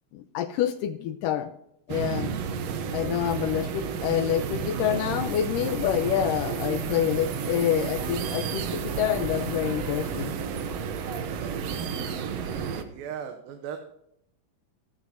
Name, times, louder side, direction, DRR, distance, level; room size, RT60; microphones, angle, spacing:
voice 1, 0.1-1.5 1.9-2.3 2.9-10.3, left 10 dB, 80° left, 10 dB, 2.1 m, -27 dB
sound 1, 1.9-12.8, right 6 dB, 70° right, 1.6 m, -31 dB
voice 2, 12.5-13.8, right 8 dB, 85° right, 6 dB, 2.7 m, -38 dB
14.5 x 13.0 x 2.7 m, 0.77 s
omnidirectional pair, 4.0 m